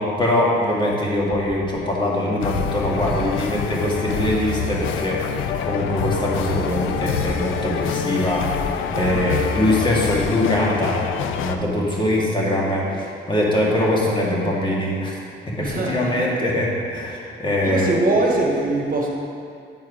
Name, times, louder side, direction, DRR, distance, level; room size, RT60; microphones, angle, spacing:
voice 1, 0.0-11.0 11.4-15.2 15.5-17.9, left 1 dB, 25° left, -4 dB, 1.9 m, -22 dB
sound 1, 2.4-11.6, left 7 dB, 85° left, 0.5 m, -26 dB
voice 2, 15.6-16.3 17.6-19.1, right 2 dB, 45° right, 0 dB, 1.4 m, -22 dB
9.4 x 4.5 x 5.0 m, 2.4 s
cardioid pair, 90°, 20 cm